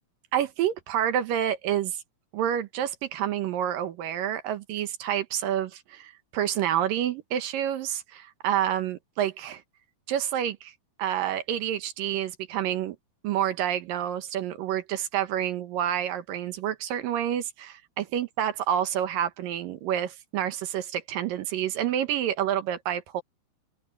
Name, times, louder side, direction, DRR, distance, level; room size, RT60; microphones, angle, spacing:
voice 1, 0.3-2.0 2.3-9.6 10.1-10.7 11.0-13.0 13.2-17.8 18.1-23.2, right 10 dB, 70° right, 2.7 m, -28 dB
open air
omnidirectional pair, 4.4 m